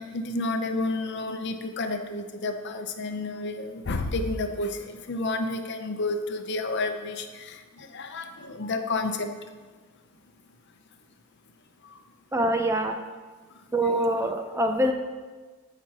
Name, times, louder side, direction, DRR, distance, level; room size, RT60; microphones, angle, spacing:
voice 1, 0.0-9.3, left 2 dB, 50° left, 7 dB, 0.7 m, -30 dB
voice 2, 12.3-13.0 13.7-14.9, right 1 dB, 10° right, 5 dB, 0.4 m, -24 dB
15.5 x 6.1 x 2.9 m, 1.4 s
head